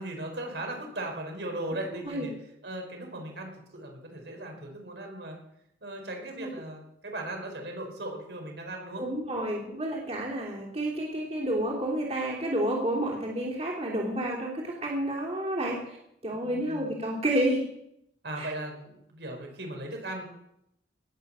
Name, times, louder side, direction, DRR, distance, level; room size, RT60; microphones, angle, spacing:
voice 1, 0.0-2.3 2.6-5.4 5.8-9.0 16.3-16.9 18.2-20.3, right 1 dB, 80° right, 2 dB, 4.5 m, -38 dB
voice 2, 9.0-16.0 16.2-17.6 18.4-18.5, right 1 dB, 35° right, -3 dB, 3.1 m, -30 dB
19.0 x 6.9 x 7.5 m, 0.77 s
head